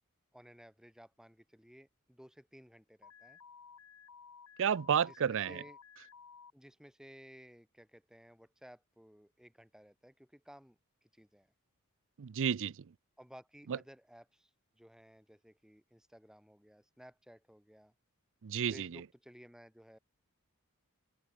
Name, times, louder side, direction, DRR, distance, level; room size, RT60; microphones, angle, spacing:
voice 1, 0.3-3.4 5.0-5.8 6.5-11.5 13.2-17.9 18.7-20.0, equal, 5° right, 4.2 m, -57 dB
Alarm, 3.0-6.5, left 6 dB, 90° left, 1.3 m, -56 dB
voice 2, 4.6-5.6 12.2-12.8 13.7-13.8 18.4-19.0, right 8 dB, 60° right, 0.5 m, -31 dB
open air
head